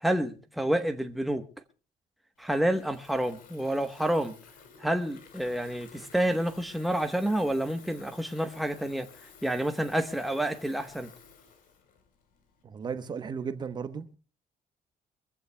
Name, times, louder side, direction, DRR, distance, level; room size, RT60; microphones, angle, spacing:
voice 1, 0.0-1.4 2.4-4.3 4.8-9.1 9.4-11.1, right 1 dB, ahead, 1.0 m, -29 dB
Water tap faucet / Fill (with liquid), 2.4-12.6, left 6 dB, 70° left, 3.8 m, -53 dB
voice 2, 12.6-14.1, right 6 dB, 30° right, 0.9 m, -35 dB
24.0 x 15.5 x 2.2 m
cardioid pair, 180°, 15 cm